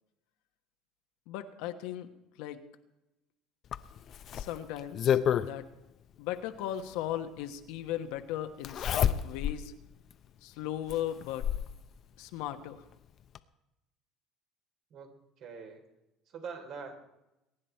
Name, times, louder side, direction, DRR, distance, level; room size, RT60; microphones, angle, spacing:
voice 1, 1.3-2.1 2.4-2.6 4.3-5.7 6.2-9.7 10.4-11.5 12.2-12.8, left 11 dB, 80° left, 7 dB, 1.2 m, -37 dB
Zipper (clothing), 3.7-5.5 6.9-7.0 8.6-9.6 10.1-10.2 10.9-11.7 12.9-13.0 13.3-13.4, left 9 dB, 50° left, 0.7 m, -29 dB
voice 2, 14.9-15.9 16.3-16.9, right 5 dB, 60° right, 4 dB, 3.5 m, -44 dB
23.0 x 10.0 x 4.5 m, 0.92 s
supercardioid pair, 105°, 0 cm